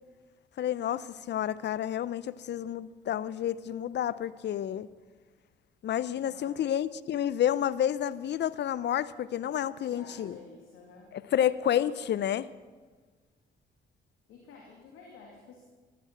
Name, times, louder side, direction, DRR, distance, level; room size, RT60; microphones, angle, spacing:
voice 1, 0.6-4.9 5.8-10.4 11.1-12.5, left 10 dB, 55° left, 0.6 m, -30 dB
voice 2, 6.2-6.6 9.8-11.1 11.7-12.0 14.3-15.6, left 4 dB, 75° left, 2.5 m, -51 dB
15.0 x 12.0 x 7.5 m
hypercardioid pair, 50°, 21 cm